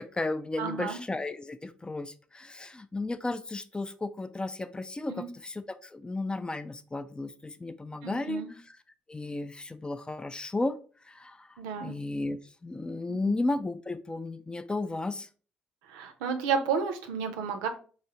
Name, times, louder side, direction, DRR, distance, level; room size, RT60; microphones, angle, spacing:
voice 1, 0.0-8.8 9.1-10.8 11.0-15.3, left 2 dB, 20° left, 12 dB, 0.4 m, -34 dB
voice 2, 0.6-1.0 5.1-5.3 8.0-8.5 11.6-11.9 13.1-13.4 15.9-17.7, right 6 dB, 75° right, 7 dB, 0.5 m, -32 dB
4.0 x 2.6 x 2.8 m, 0.40 s
hypercardioid pair, 45°, 5 cm